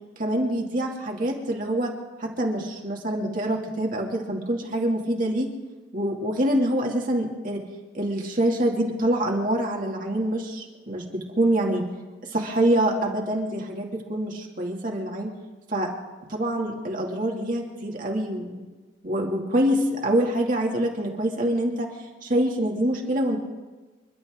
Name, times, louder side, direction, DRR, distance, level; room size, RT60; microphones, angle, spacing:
voice 1, 0.2-1.9 2.2-5.5 5.9-7.6 7.9-11.8 12.3-15.3 15.7-15.9 16.3-18.6 19.0-21.9 22.2-23.4, right 1 dB, 45° right, -1 dB, 2.5 m, -25 dB
29.0 x 11.5 x 3.8 m, 1.2 s
head